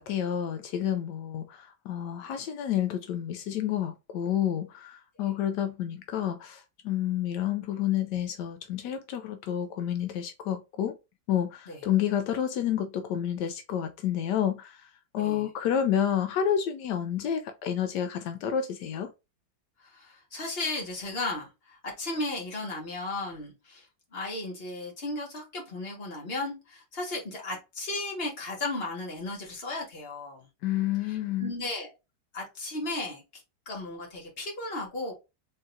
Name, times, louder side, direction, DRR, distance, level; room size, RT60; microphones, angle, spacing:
voice 1, 0.0-11.0 11.3-19.1 30.6-31.5, left 10 dB, 80° left, 1.2 m, -29 dB
voice 2, 15.2-15.5 19.8-30.5 31.0-31.9 32.3-35.1, left 2 dB, 35° left, 1.7 m, -35 dB
4.3 x 3.7 x 2.5 m
omnidirectional pair, 1.8 m